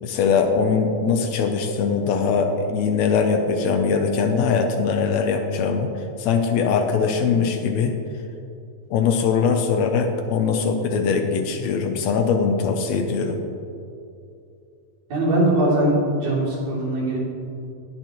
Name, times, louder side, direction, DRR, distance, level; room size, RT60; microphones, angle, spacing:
voice 1, 0.0-5.9 6.2-7.9 8.9-13.4, left 5 dB, 75° left, 5 dB, 1.8 m, -21 dB
voice 2, 15.1-17.2, right 1 dB, 60° right, -7 dB, 4.0 m, -21 dB
19.0 x 6.7 x 3.0 m, 2.6 s
omnidirectional pair, 3.3 m